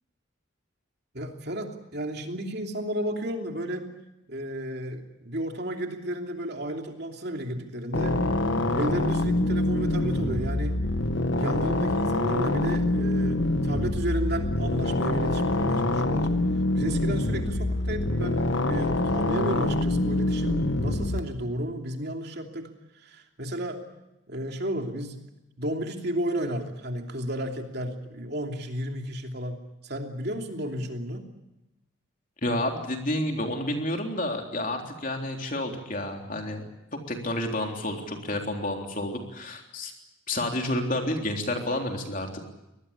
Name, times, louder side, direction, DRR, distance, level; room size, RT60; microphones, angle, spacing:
voice 1, 1.1-3.9 4.3-8.2 8.7-10.8 11.3-16.3 16.7-22.7 23.0-23.8 24.3-25.2 25.6-29.6 29.8-31.3, right 1 dB, 50° right, 3 dB, 3.0 m, -33 dB
sound 1, 7.9-21.2, left 1 dB, 65° left, 1.4 m, -25 dB
voice 2, 32.4-36.6 36.9-39.9 40.3-42.5, left 1 dB, 40° left, 3 dB, 3.6 m, -30 dB
24.0 x 20.0 x 8.5 m, 0.93 s
head